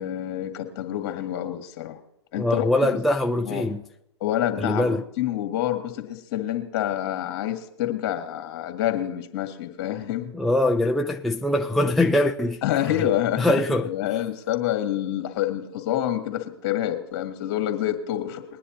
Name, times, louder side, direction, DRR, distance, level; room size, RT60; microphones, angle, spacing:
voice 1, 0.0-2.0 2.3-2.9 3.5-3.7 4.2-10.3 12.6-13.5 13.8-18.4, left 12 dB, 45° left, 2.1 m, -27 dB
voice 2, 2.4-3.8 4.6-5.0 10.3-12.6 13.4-13.9, left 1 dB, ahead, 0.3 m, -22 dB
21.0 x 10.0 x 2.9 m
hypercardioid pair, 130°, 15 cm